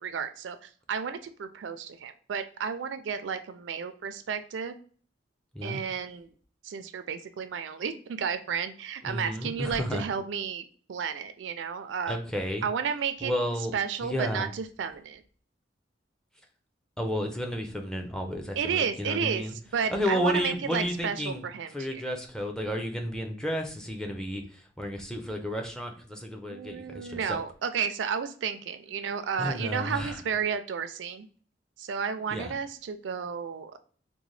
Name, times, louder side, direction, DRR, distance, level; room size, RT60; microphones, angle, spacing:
voice 1, 0.0-4.7 5.6-6.3 6.6-12.2 12.6-13.3 13.7-15.2 18.6-19.4 19.7-22.0 26.5-31.3 31.8-33.8, right 6 dB, 80° right, 9 dB, 0.4 m, -32 dB
voice 2, 9.0-10.0 12.1-12.6 13.2-13.7 14.0-14.5 17.0-19.6 19.9-27.4 29.4-30.2 32.3-32.5, equal, 5° left, 3 dB, 0.4 m, -32 dB
3.8 x 2.1 x 3.1 m, 0.44 s
head